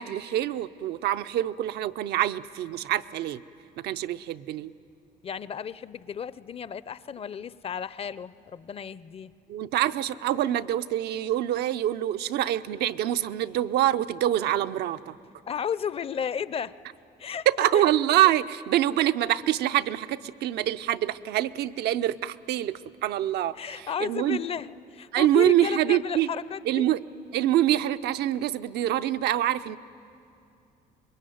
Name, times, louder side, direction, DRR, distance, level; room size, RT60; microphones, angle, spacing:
voice 1, 0.0-3.4 3.8-4.7 9.5-15.2 17.5-24.4 25.1-26.3 26.7-27.0 27.3-29.8, right 12 dB, 75° right, 11 dB, 0.6 m, -25 dB
voice 2, 5.2-9.3 15.5-16.8 17.2-17.5 23.6-26.9, left 7 dB, 35° left, 17 dB, 0.6 m, -33 dB
25.5 x 21.5 x 9.3 m, 2.6 s
cardioid pair, 110°, 17 cm